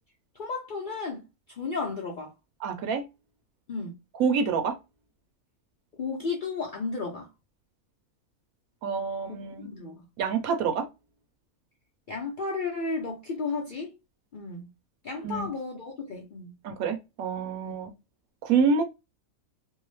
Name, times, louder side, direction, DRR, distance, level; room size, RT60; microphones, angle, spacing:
voice 1, 0.3-1.2 1.5-2.3 3.7-3.9 6.0-7.3 9.6-10.1 12.1-14.0 14.3-14.7 15.0-16.5, left 4 dB, 75° left, 0.4 m, -33 dB
voice 2, 2.6-3.1 4.1-4.8 8.8-9.7 10.2-10.9 15.2-15.5 16.6-17.9 18.4-18.8, right 5 dB, 75° right, 1.0 m, -27 dB
2.7 x 2.0 x 2.9 m
omnidirectional pair, 1.5 m